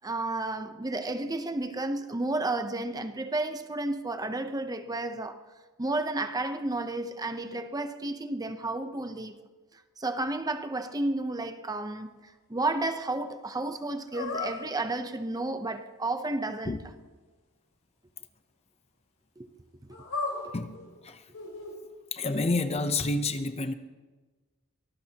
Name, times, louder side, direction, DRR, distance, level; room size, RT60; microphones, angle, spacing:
voice 1, 0.0-5.4 5.8-9.4 10.0-12.1 12.5-16.8 19.4-19.5, right 2 dB, 15° right, 0.8 m, -32 dB
sound 1, 14.1-14.6 19.9-20.9 21.3-21.7 22.2-22.4, left 3 dB, 90° left, 4.4 m, -35 dB
voice 2, 22.1-23.7, left 2 dB, 30° left, 0.7 m, -29 dB
24.0 x 18.5 x 2.9 m
head